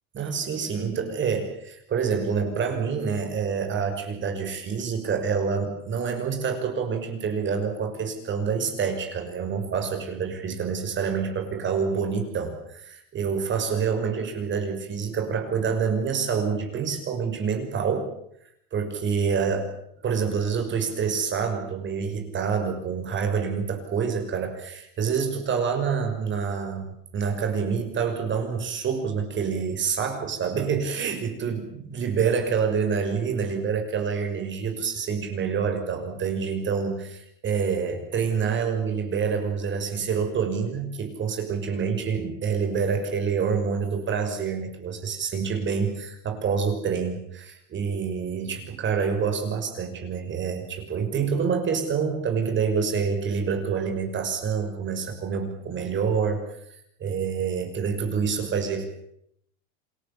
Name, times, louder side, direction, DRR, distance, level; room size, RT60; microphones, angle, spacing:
voice 1, 0.1-18.1 18.7-19.7 20.0-56.5 57.0-58.8, right 6 dB, 30° right, 5 dB, 6.0 m, -27 dB
28.0 x 18.0 x 8.7 m, 0.73 s
supercardioid pair, 130°, 38 cm